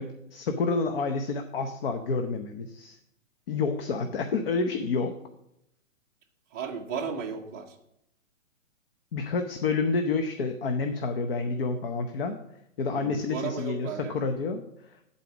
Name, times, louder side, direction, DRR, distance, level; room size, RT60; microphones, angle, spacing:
voice 1, 0.0-3.0 3.5-5.2 9.1-12.4 12.8-15.0, left 4 dB, 45° left, 7 dB, 0.7 m, -29 dB
voice 2, 6.5-7.7 12.9-14.2, right 6 dB, 15° right, -2 dB, 0.5 m, -35 dB
11.5 x 4.2 x 5.9 m, 0.79 s
hypercardioid pair, 150°, 40 cm